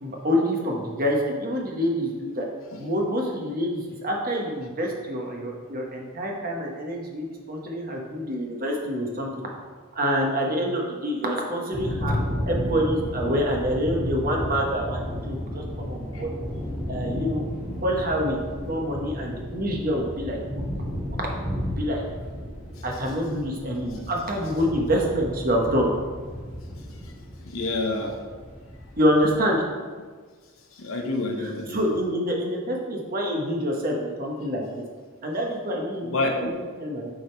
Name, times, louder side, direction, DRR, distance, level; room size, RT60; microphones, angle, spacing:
voice 1, 0.0-2.5 2.8-9.3 9.9-12.2 12.5-16.3 16.9-17.4 17.8-18.4 18.7-20.4 21.8-22.0 22.8-25.9 29.0-29.6 31.4-34.6 35.2-37.1, equal, 40° right, 0 dB, 1.2 m, -26 dB
sound 1, 11.7-29.4, equal, 5° right, 1.8 m, -33 dB
voice 2, 27.4-28.2 30.8-31.8 36.0-36.5, left 2 dB, 70° left, 3 dB, 0.9 m, -27 dB
8.4 x 3.9 x 4.5 m, 1.5 s
head